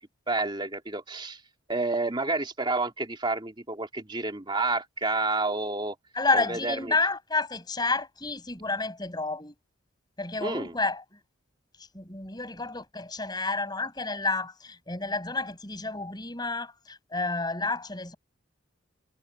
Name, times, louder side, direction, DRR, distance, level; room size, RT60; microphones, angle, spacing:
voice 1, 0.3-1.4 1.7-6.0 6.3-6.9 10.4-10.7, right 3 dB, 25° right, 2.8 m, -29 dB
voice 2, 6.2-9.5 10.2-11.0 11.9-18.2, left 3 dB, 20° left, 5.7 m, -30 dB
head